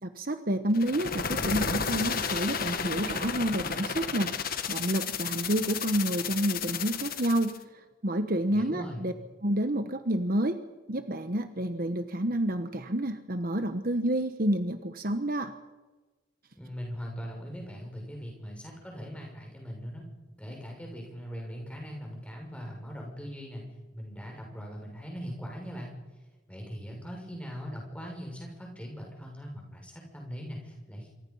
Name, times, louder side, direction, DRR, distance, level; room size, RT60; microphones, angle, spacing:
voice 1, 0.0-4.3 4.7-7.6 8.0-9.1 9.4-10.6 10.9-15.5, right 1 dB, 45° right, 8 dB, 1.2 m, -29 dB
sound 1, 0.7-7.6, left 6 dB, 45° left, 1.4 m, -32 dB
voice 2, 8.5-9.0 16.6-20.0 20.4-23.6 23.9-25.9 26.5-31.1, equal, 5° left, 0 dB, 6.6 m, -40 dB
27.0 x 24.5 x 5.7 m, 1.2 s
head